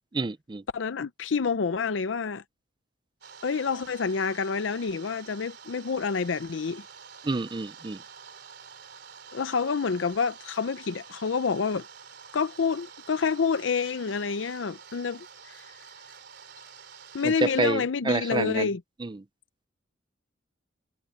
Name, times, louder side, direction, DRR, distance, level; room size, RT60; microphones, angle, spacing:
voice 1, 0.1-0.6 7.2-8.0 17.2-18.7 19.0-19.2, right 3 dB, 25° right, 0.5 m, -28 dB
voice 2, 0.7-2.4 3.4-6.8 9.3-11.8 12.3-15.7 17.1-18.8, left 5 dB, 80° left, 0.6 m, -28 dB
sound 1, 3.2-17.6, right 7 dB, 60° right, 3.4 m, -48 dB
head